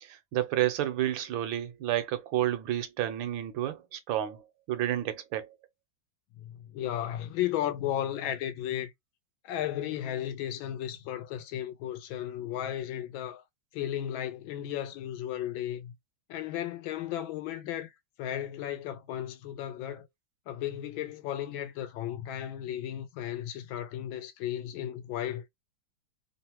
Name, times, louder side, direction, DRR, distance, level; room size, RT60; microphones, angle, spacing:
voice 1, 0.0-5.5, right 13 dB, 80° right, 1.4 m, -30 dB
voice 2, 6.4-8.9 9.4-13.4 13.7-15.9 16.3-17.9 18.2-20.1 20.5-25.5, left 11 dB, 85° left, 1.4 m, -34 dB
3.6 x 2.1 x 2.8 m
omnidirectional pair, 2.1 m